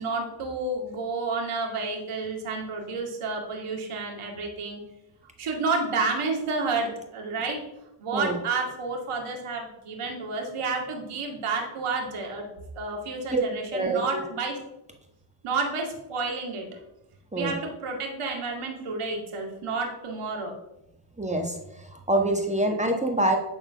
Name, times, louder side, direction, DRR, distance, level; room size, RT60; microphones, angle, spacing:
voice 1, 0.0-4.8 5.4-7.6 8.0-12.5 12.7-14.6 15.4-16.7 17.3-20.5, right 3 dB, 85° right, 1 dB, 2.3 m, -30 dB
voice 2, 13.7-14.2 17.3-17.5 21.2-21.6 21.9-23.4, right 1 dB, 15° right, 2 dB, 1.4 m, -25 dB
10.5 x 3.9 x 6.1 m, 0.88 s
cardioid pair, 100°, 50 cm